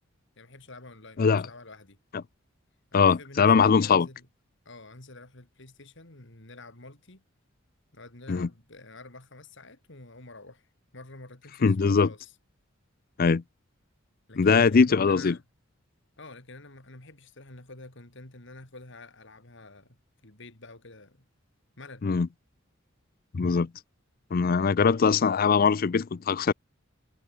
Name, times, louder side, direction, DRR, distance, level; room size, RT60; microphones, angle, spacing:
voice 1, 0.4-2.0 2.9-4.3 4.7-7.2 7.9-12.3 14.3-15.4 16.2-21.3 21.8-22.1, left 2 dB, 65° left, 3.7 m, -48 dB
voice 2, 2.9-4.1 8.3-8.5 11.6-12.1 13.2-13.4 14.4-15.4 22.0-22.3 23.3-23.7 24.3-26.5, left 5 dB, 45° left, 0.4 m, -21 dB
head